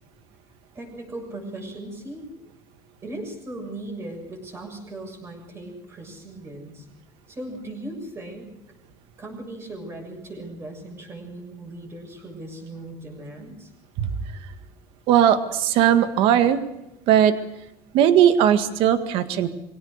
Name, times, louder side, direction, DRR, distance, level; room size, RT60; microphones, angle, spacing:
voice 1, 0.7-2.3 3.0-6.9 7.3-8.5 9.2-13.7, right 1 dB, 25° right, 3 dB, 7.0 m, -38 dB
voice 2, 15.1-16.6 17.1-17.3 17.9-19.5, right 10 dB, 60° right, 9 dB, 1.8 m, -18 dB
23.5 x 17.5 x 6.6 m, 0.89 s
cardioid pair, 140°, 10 cm